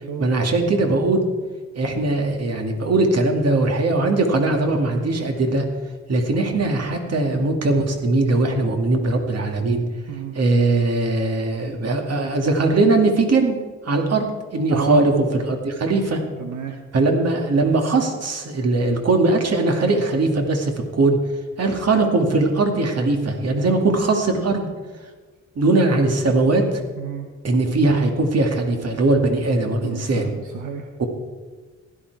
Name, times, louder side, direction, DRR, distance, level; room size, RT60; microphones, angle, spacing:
voice 1, 0.2-1.3 1.8-5.6 6.1-9.8 10.3-13.6 13.8-14.3 14.5-16.2 16.9-21.2 21.6-24.7 25.6-26.8 27.4-30.3 31.0-31.1, right 2 dB, 55° right, 3 dB, 2.1 m, -20 dB
voice 2, 14.7-15.0 16.4-16.8 27.0-27.3 29.8-30.9, right 7 dB, 85° right, 4 dB, 1.1 m, -30 dB
16.0 x 11.5 x 4.7 m, 1.4 s
cardioid pair, 95°, 30 cm